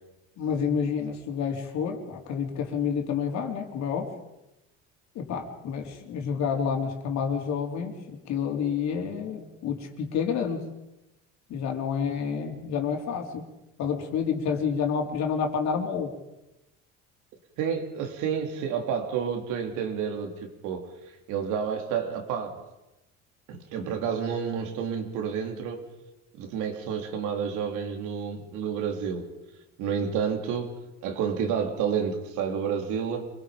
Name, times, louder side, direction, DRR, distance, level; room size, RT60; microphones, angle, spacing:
voice 1, 0.4-4.1 5.1-10.6 11.5-13.5 13.8-16.1, left 6 dB, 65° left, 2 dB, 3.9 m, -29 dB
voice 2, 17.6-20.9 21.3-22.7 23.5-25.8 26.3-29.3 29.8-30.8 31.0-33.3, right 7 dB, 80° right, 4 dB, 3.7 m, -30 dB
27.0 x 21.5 x 5.3 m, 0.94 s
cardioid pair, 120°, 30 cm